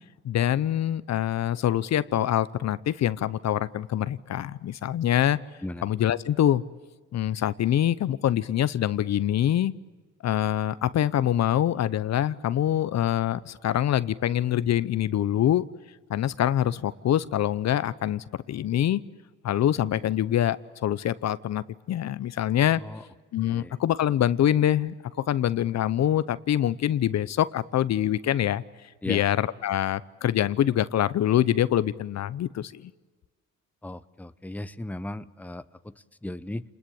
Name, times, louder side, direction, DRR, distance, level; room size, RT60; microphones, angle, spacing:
voice 1, 0.2-5.4 5.8-6.6 7.1-9.7 10.2-15.7 16.1-19.0 19.4-22.8 23.3-28.6 29.1-32.9, left 11 dB, 60° left, 17 dB, 0.8 m, -25 dB
voice 2, 22.7-23.0 23.4-23.8 29.0-29.2 33.8-36.6, left 1 dB, 5° left, 13 dB, 0.8 m, -37 dB
29.0 x 20.5 x 8.6 m, 1.3 s
cardioid pair, 90°, 30 cm